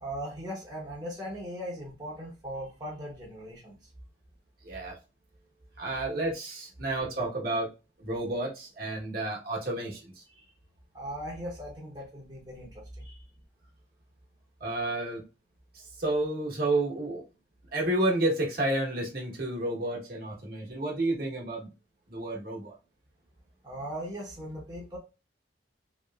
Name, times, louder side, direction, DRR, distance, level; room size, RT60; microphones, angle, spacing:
voice 1, 0.0-3.8 10.3-10.5 10.9-13.2 23.6-25.0, equal, 20° right, 0.8 m, -39 dB
voice 2, 4.6-5.0 5.8-7.7 8.0-10.2 14.6-15.2 15.7-17.2 17.7-21.7 22.1-22.7, right 2 dB, 50° right, 1.0 m, -30 dB
2.9 x 2.9 x 2.3 m
head